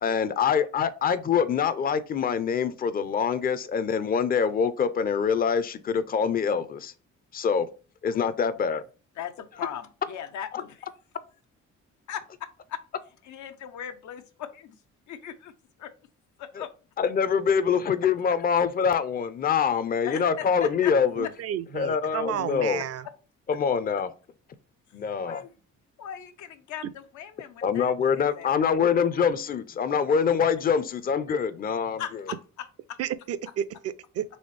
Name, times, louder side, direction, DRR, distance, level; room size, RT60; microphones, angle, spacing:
voice 1, 0.0-6.9 7.3-7.7 8.0-8.8 16.6-16.7 17.0-21.3 21.7-22.8 23.5-24.1 24.9-25.4 27.6-32.0, left 6 dB, 30° left, 0.4 m, -25 dB
voice 2, 9.2-10.9 12.1-12.8 13.2-14.8 15.1-15.5 15.8-15.9 16.4-16.7 20.0-20.9 21.2-21.3 25.2-25.5 26.0-28.6 32.0-33.0, left 9 dB, 75° left, 0.6 m, -39 dB
voice 3, 21.2-23.1 33.0-34.2, right 10 dB, 55° right, 0.5 m, -32 dB
4.2 x 3.1 x 3.2 m
cardioid pair, 90°, 30 cm